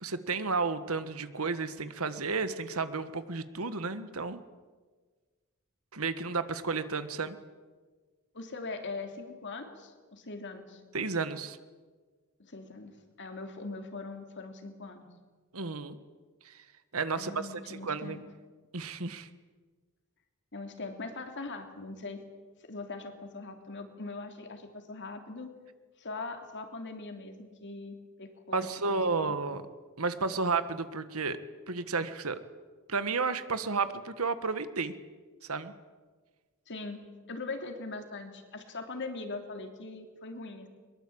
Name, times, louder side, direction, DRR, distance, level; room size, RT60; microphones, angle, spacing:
voice 1, 0.0-4.4 5.9-7.4 10.9-11.6 15.5-15.9 16.4-16.6 16.9-18.2 18.7-19.3 28.5-29.6 30.0-31.4 31.7-32.4 32.9-34.9 35.5-35.7, right 4 dB, 70° right, 12 dB, 1.6 m, -32 dB
voice 2, 8.3-10.8 12.4-15.1 17.1-18.2 20.5-22.2 22.7-25.5 26.0-28.8 29.1-29.4 36.7-40.7, left 3 dB, 55° left, 5 dB, 3.1 m, -41 dB
23.0 x 22.0 x 8.7 m, 1.4 s
head